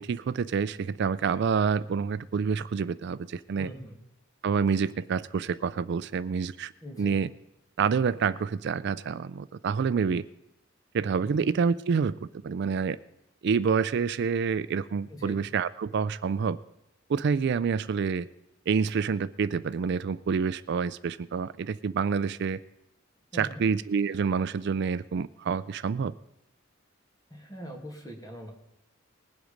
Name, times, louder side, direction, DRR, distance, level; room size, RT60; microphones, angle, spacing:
voice 1, 0.0-3.7 4.4-6.7 7.0-7.3 7.8-10.3 10.9-13.0 13.4-16.6 17.1-18.3 18.7-22.6 23.3-26.1, right 6 dB, 55° right, 16 dB, 0.4 m, -27 dB
voice 2, 3.6-4.0 6.8-7.2 11.2-11.4 15.1-15.4 23.3-23.7 27.3-28.5, equal, 20° left, 1 dB, 2.3 m, -42 dB
20.5 x 7.9 x 5.1 m, 0.89 s
head